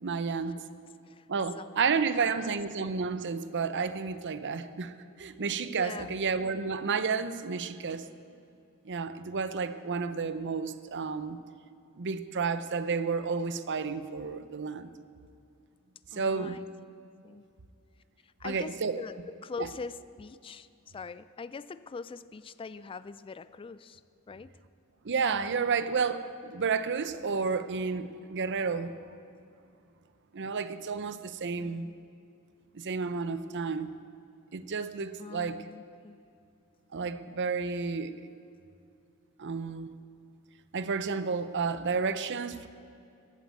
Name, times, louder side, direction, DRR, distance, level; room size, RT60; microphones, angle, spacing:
voice 1, 0.0-0.6 1.3-4.9 5.2-8.1 8.8-11.4 12.0-14.9 16.1-16.6 18.4-19.0 19.6-19.7 25.0-28.9 30.3-31.9 32.7-33.9 34.5-35.6 36.9-38.1 39.4-39.9 40.7-42.7, right 5 dB, 55° right, 13 dB, 0.7 m, -31 dB
voice 2, 2.2-2.6 5.7-6.1 16.1-16.7 17.2-17.4 18.4-20.7 20.9-24.0 24.3-24.5 31.6-32.0 35.2-36.2, left 4 dB, 25° left, 15 dB, 0.3 m, -42 dB
14.5 x 8.6 x 8.3 m, 2.5 s
head